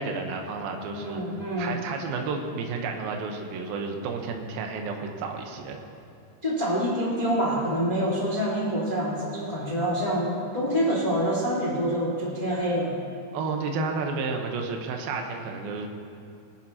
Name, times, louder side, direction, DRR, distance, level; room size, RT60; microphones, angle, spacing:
voice 1, 0.0-1.2 1.6-5.8 13.3-15.9, right 4 dB, 75° right, 3 dB, 2.8 m, -31 dB
voice 2, 0.9-1.8 6.4-13.0, equal, 35° left, -4 dB, 0.6 m, -26 dB
19.5 x 12.5 x 2.9 m, 2.7 s
omnidirectional pair, 4.5 m